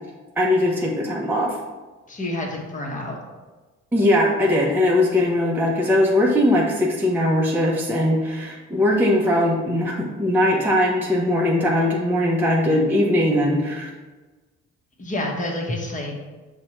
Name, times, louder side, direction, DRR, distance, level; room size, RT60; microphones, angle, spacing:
voice 1, 0.4-1.6 3.9-13.9, left 1 dB, 5° right, -3 dB, 0.5 m, -20 dB
voice 2, 2.1-3.2 15.0-16.2, left 1 dB, 25° left, 0 dB, 0.9 m, -28 dB
5.8 x 2.2 x 2.9 m, 1.3 s
cardioid pair, 90°, 30 cm